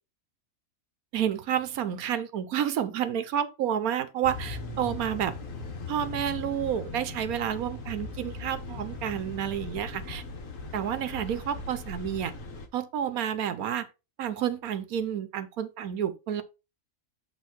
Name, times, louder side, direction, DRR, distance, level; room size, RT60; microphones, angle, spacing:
voice 1, 1.1-5.3 5.9-10.2 10.7-12.3 12.7-13.9 14.2-16.4, right 9 dB, 90° right, 1.3 m, -30 dB
sound 1, 4.2-12.7, left 3 dB, 65° left, 1.6 m, -39 dB
8.3 x 3.6 x 4.5 m
omnidirectional pair, 1.5 m